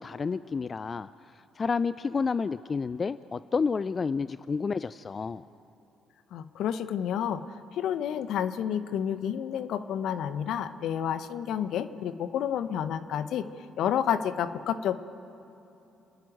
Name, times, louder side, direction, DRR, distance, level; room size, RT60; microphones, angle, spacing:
voice 1, 0.0-5.4, left 5 dB, 40° left, 15 dB, 0.4 m, -30 dB
voice 2, 6.3-7.4 7.7-13.4 13.8-14.9, left 9 dB, 65° left, 11 dB, 0.9 m, -30 dB
29.0 x 10.5 x 9.3 m, 2.9 s
hypercardioid pair, 45°, 0 cm